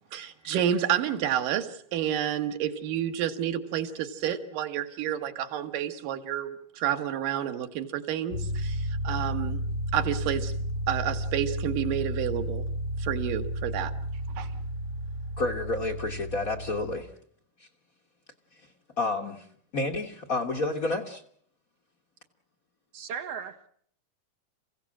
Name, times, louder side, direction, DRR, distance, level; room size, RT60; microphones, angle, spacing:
voice 1, 0.1-9.6 9.9-10.5 10.9-12.6 13.0-13.9 14.4-14.5, right 10 dB, 85° right, 7 dB, 2.9 m, -30 dB
sound 1, 8.3-17.0, equal, 25° right, 5.7 m, -32 dB
voice 2, 15.4-17.1 17.6-17.7 19.0-19.5 19.7-21.2, left 2 dB, 60° left, 2 dB, 0.8 m, -30 dB
voice 3, 22.9-23.7, right 7 dB, 60° right, 8 dB, 2.1 m, -36 dB
29.0 x 16.0 x 7.5 m, 0.64 s
omnidirectional pair, 3.7 m